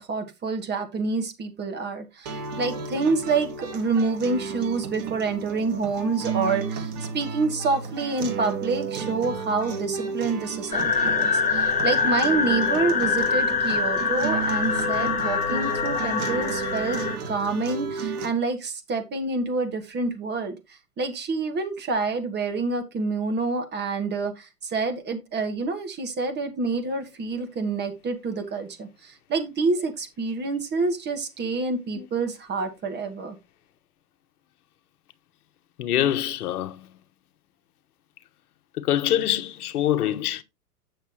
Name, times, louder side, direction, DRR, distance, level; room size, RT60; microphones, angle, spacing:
voice 1, 0.0-17.0 17.3-33.4, right 3 dB, 20° right, 1.4 m, -27 dB
sound 1, 2.3-18.3, right 5 dB, 40° right, 2.1 m, -33 dB
sound 2, 10.7-17.2, left 5 dB, 15° left, 1.5 m, -24 dB
voice 2, 35.8-36.7 38.8-40.4, left 11 dB, 70° left, 1.1 m, -24 dB
8.0 x 6.7 x 3.1 m
hypercardioid pair, 115°, 47 cm